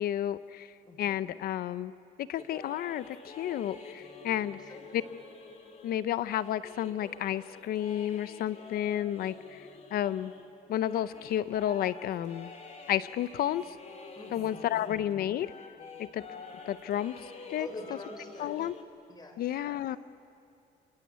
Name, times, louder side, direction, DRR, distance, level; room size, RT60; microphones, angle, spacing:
voice 1, 0.0-1.9 2.3-4.6 4.9-5.0 5.8-10.3 10.7-12.5 12.9-13.8 14.3-15.5 16.0-16.2 16.7-17.1 17.5-17.7 18.4-18.7 19.4-20.0, left 11 dB, 65° left, 15 dB, 0.6 m, -31 dB
voice 2, 0.9-1.4 4.5-5.1 14.1-14.9 17.5-18.5 19.1-20.0, left 2 dB, 25° left, 5 dB, 4.5 m, -47 dB
sound 1, 2.4-15.1 15.4-18.8, left 4 dB, 40° left, 3.2 m, -48 dB
28.0 x 22.5 x 8.4 m, 2.6 s
cardioid pair, 110°, 17 cm